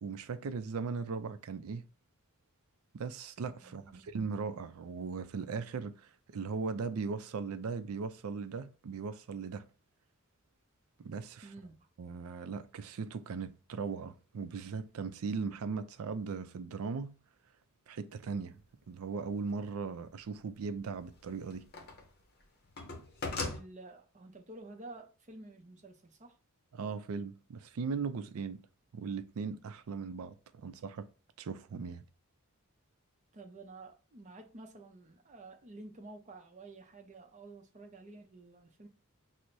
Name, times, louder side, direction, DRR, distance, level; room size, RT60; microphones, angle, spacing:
voice 1, 0.0-1.8 2.9-9.7 11.0-11.5 12.0-17.2 17.9-18.6 18.9-21.7 26.7-28.6 28.9-31.1 31.4-32.0, right 5 dB, 75° right, 0.4 m, -38 dB
voice 2, 3.6-4.1 11.4-11.9 23.4-26.3 33.3-38.9, right 2 dB, 35° right, 0.6 m, -51 dB
sound 1, 19.0-19.1 20.8-22.1 22.4-23.6, left 3 dB, 45° left, 0.7 m, -39 dB
6.0 x 2.0 x 2.6 m
head